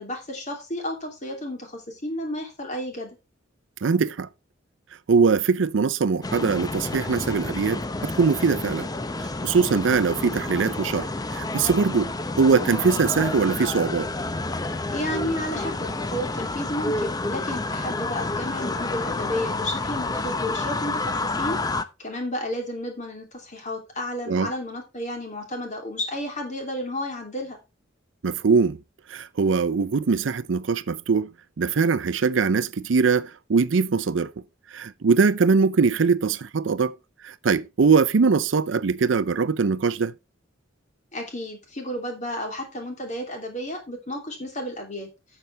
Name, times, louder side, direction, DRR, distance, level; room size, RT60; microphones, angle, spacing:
voice 1, 0.0-3.2 14.6-21.6 22.0-27.6 41.1-45.1, left 1 dB, 40° left, 2.9 m, -32 dB
voice 2, 3.8-4.3 5.1-8.9 9.2-14.1 24.3-24.5 28.2-28.8 29.1-31.3 31.6-34.3 34.7-36.9 37.2-40.1, right 5 dB, 65° right, 0.5 m, -22 dB
sound 1, 6.2-21.8, left 2 dB, 20° left, 0.7 m, -29 dB
12.0 x 7.0 x 3.3 m
head